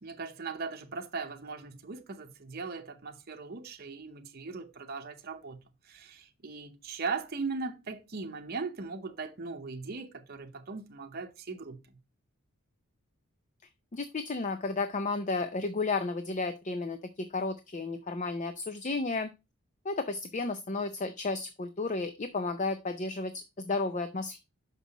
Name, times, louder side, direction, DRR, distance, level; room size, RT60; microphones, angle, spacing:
voice 1, 0.0-5.6 5.8-11.8, right 4 dB, 45° right, 0.8 m, -39 dB
voice 2, 13.9-19.3 19.8-24.4, left 3 dB, 35° left, 0.5 m, -33 dB
6.0 x 5.6 x 4.0 m
head